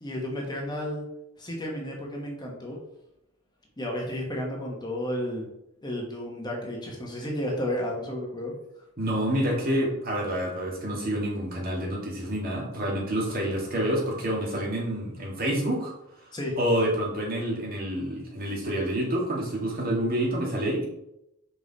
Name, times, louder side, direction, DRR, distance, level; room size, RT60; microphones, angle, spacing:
voice 1, 0.0-1.0 1.4-2.8 3.8-5.5 5.8-8.5 16.3-16.6, left 1 dB, 20° left, -1 dB, 1.3 m, -32 dB
voice 2, 9.0-15.9 16.6-20.9, right 1 dB, 40° right, -2 dB, 2.0 m, -28 dB
5.8 x 5.3 x 4.1 m, 0.82 s
head